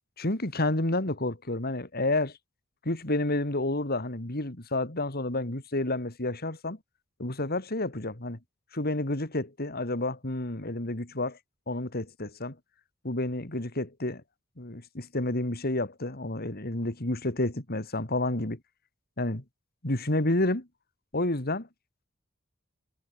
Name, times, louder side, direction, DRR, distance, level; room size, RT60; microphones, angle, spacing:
voice 1, 0.2-2.4 2.8-6.8 7.2-8.4 8.7-11.4 11.7-12.6 13.0-14.2 14.6-18.6 19.2-19.4 19.8-20.7 21.1-21.7, left 2 dB, 50° left, 3.1 m, -30 dB
head